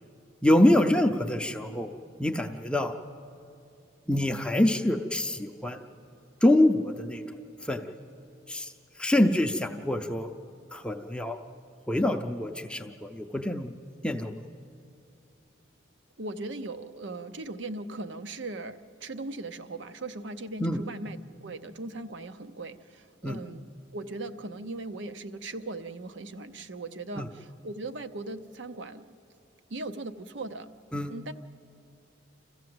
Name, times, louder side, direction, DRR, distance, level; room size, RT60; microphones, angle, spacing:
voice 1, 0.4-1.9 2.2-3.0 4.1-5.8 6.4-7.2 7.6-7.9 8.5-8.7 9.0-10.3 10.7-11.4 11.9-13.7 14.0-14.4 20.6-20.8 23.2-23.4 27.2-27.3 30.9-31.1, left 1 dB, 5° left, 4 dB, 0.5 m, -25 dB
voice 2, 16.2-23.7 23.9-29.2 29.7-30.7 31.1-31.3, right 2 dB, 65° right, 10 dB, 0.8 m, -38 dB
27.5 x 15.0 x 7.8 m, 2.6 s
head